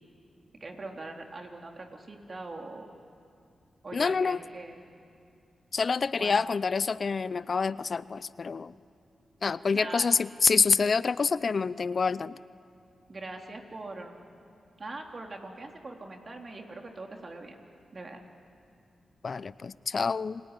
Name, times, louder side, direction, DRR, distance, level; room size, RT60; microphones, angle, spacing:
voice 1, 0.6-2.9 3.8-4.8 6.1-6.4 9.7-10.1 13.1-14.2 14.8-17.6 17.9-18.2, right 2 dB, 50° right, 2 dB, 3.5 m, -42 dB
voice 2, 3.9-4.4 5.7-8.7 9.4-12.4 19.2-20.4, left 5 dB, 55° left, 17 dB, 0.6 m, -27 dB
29.0 x 20.0 x 9.9 m, 2.4 s
supercardioid pair, 45°, 0 cm